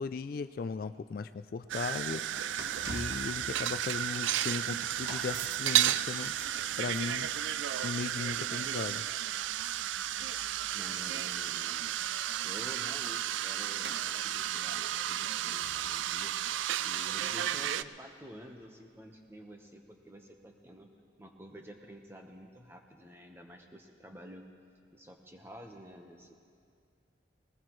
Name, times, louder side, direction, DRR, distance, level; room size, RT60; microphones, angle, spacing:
voice 1, 0.0-2.5 2.9-6.4 6.8-7.3 7.8-9.0, left 4 dB, 50° left, 11 dB, 0.3 m, -37 dB
sound 1, 1.7-17.8, right 12 dB, 85° right, 0.3 m, -33 dB
sound 2, 2.3-18.5 19.1-19.2, right 2 dB, 65° right, 1.2 m, -51 dB
voice 2, 10.7-11.9 12.4-16.4 16.8-20.9 21.2-24.5 24.9-26.3, equal, 15° right, 3 dB, 1.1 m, -50 dB
20.5 x 19.0 x 3.2 m, 2.2 s
head